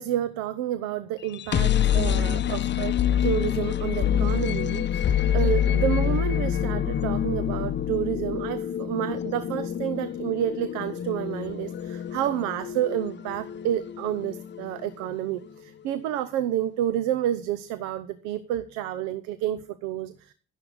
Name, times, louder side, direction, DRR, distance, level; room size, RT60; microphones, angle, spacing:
voice 1, 0.0-3.0 3.2-20.3, right 11 dB, 70° right, 14 dB, 0.8 m, -29 dB
sound 1, 1.2-15.1, left 9 dB, 40° left, 0.7 m, -26 dB
12.0 x 10.5 x 5.0 m, 0.40 s
figure-of-eight pair, 45°, 29 cm